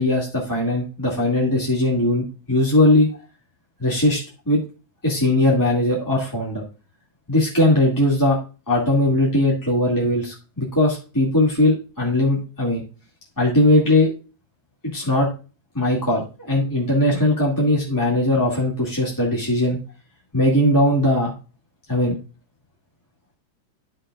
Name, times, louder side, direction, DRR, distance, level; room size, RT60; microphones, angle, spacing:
voice 1, 0.0-3.1 3.8-4.6 5.0-6.6 7.3-8.4 8.7-12.8 13.4-14.1 14.9-15.3 15.7-19.8 20.3-21.3 21.9-22.1, left 1 dB, 10° left, -4 dB, 2.3 m, -19 dB
13.5 x 5.5 x 2.4 m, 0.33 s
omnidirectional pair, 2.2 m